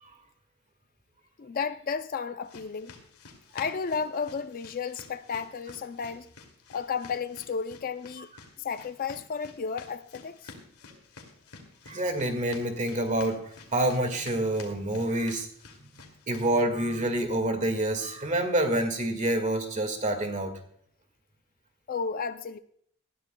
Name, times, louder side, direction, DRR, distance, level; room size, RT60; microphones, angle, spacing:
voice 1, 1.4-2.9 3.5-6.3 6.7-8.3 8.6-10.5 21.9-22.6, left 5 dB, 40° left, 0.4 m, -33 dB
sound 1, 2.4-16.6, left 4 dB, 85° left, 2.4 m, -51 dB
voice 2, 11.9-15.5 15.8-20.5, right 1 dB, 35° right, 1.8 m, -27 dB
19.5 x 14.0 x 2.2 m
head